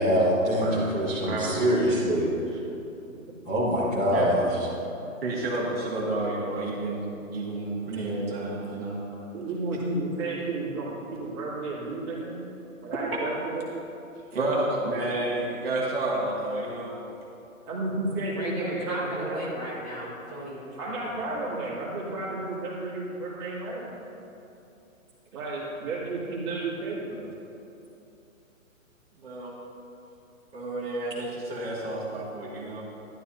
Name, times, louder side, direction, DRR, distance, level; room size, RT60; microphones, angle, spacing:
voice 1, 0.0-2.3 3.4-4.5, equal, 10° left, -13 dB, 1.8 m, -24 dB
voice 2, 1.2-1.5 4.1-4.3 5.2-9.0 9.7-9.8 14.3-16.9 29.2-29.5 30.5-32.8, right 2 dB, 45° right, -5 dB, 2.2 m, -30 dB
voice 3, 9.3-12.4 12.8-13.6 14.3-14.7 17.7-19.4 20.8-24.0 25.3-27.3, right 2 dB, 15° right, -11 dB, 2.6 m, -32 dB
voice 4, 18.4-21.4, equal, 25° left, -7 dB, 2.0 m, -36 dB
14.0 x 12.0 x 2.8 m, 2.8 s
hypercardioid pair, 180°, 42 cm